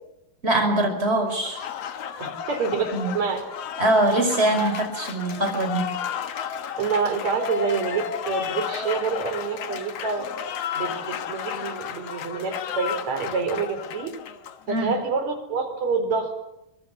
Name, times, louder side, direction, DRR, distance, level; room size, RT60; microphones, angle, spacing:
voice 1, 0.4-1.6 2.9-3.1 3.8-5.9 14.7-14.9, right 1 dB, 15° right, 5 dB, 5.3 m, -22 dB
Applause, 1.3-14.9, left 8 dB, 60° left, 1.7 m, -33 dB
voice 2, 2.2-3.5 6.8-10.3 10.7-14.1 14.7-16.3, right 5 dB, 45° right, 6 dB, 5.2 m, -27 dB
24.0 x 23.5 x 7.2 m, 0.86 s
omnidirectional pair, 4.4 m